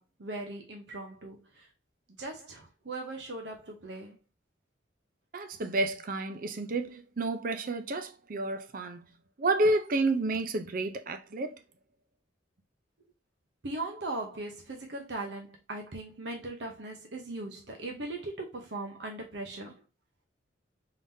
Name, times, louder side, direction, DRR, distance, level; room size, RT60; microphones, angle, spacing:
voice 1, 0.0-1.7 2.2-4.2 13.6-19.8, right 2 dB, 65° right, 0.9 m, -39 dB
voice 2, 5.3-9.0 9.4-11.6, right 2 dB, 50° right, 0.5 m, -30 dB
3.9 x 3.6 x 2.7 m
head